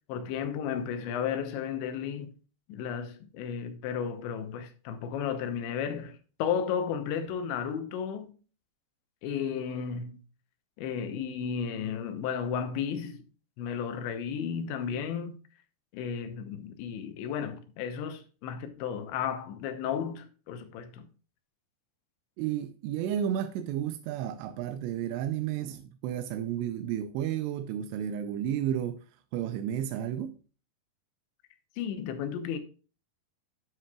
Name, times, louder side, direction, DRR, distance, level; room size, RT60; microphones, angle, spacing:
voice 1, 0.1-2.3 2.7-8.3 9.2-10.2 10.8-13.2 13.6-15.4 15.9-21.1 31.8-32.6, left 7 dB, 80° left, 3.2 m, -33 dB
voice 2, 22.4-29.0 29.3-30.3, right 10 dB, 85° right, 2.6 m, -32 dB
9.9 x 7.6 x 2.3 m
omnidirectional pair, 5.3 m